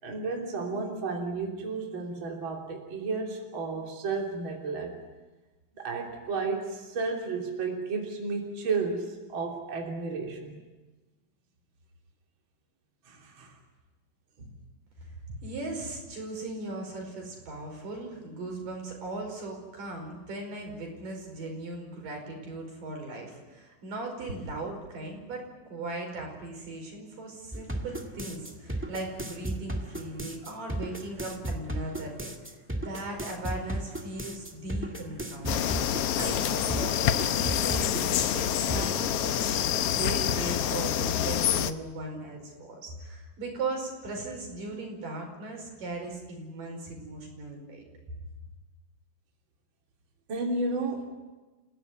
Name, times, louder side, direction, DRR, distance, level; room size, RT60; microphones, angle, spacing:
voice 1, 0.0-5.0 5.8-10.6 13.1-13.6 14.4-14.5 50.3-51.0, right 3 dB, 35° right, 0 dB, 3.7 m, -32 dB
voice 2, 15.0-32.3 32.8-35.7 36.2-47.8, right 2 dB, 70° right, 2 dB, 6.8 m, -38 dB
sound 1, 27.5-39.0, right 1 dB, 15° right, 0.5 m, -35 dB
sound 2, 35.5-41.7, left 10 dB, 90° left, 1.3 m, -27 dB
29.5 x 16.5 x 9.5 m, 1.2 s
omnidirectional pair, 4.0 m